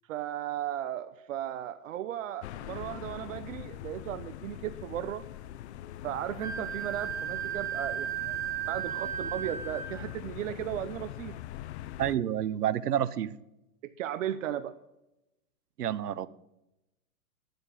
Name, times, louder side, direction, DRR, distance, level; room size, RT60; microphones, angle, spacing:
voice 1, 0.1-5.2 6.0-11.3 13.8-14.7, right 11 dB, 55° right, 0.8 m, -36 dB
sound 1, 2.4-12.2, left 12 dB, 45° left, 0.6 m, -43 dB
Wind instrument woodwind instrument, 6.4-10.1, right 10 dB, 10° right, 0.4 m, -35 dB
voice 2, 12.0-13.3 15.8-16.3, right 10 dB, 90° right, 0.8 m, -29 dB
11.0 x 7.9 x 6.8 m
hypercardioid pair, 135°, 46 cm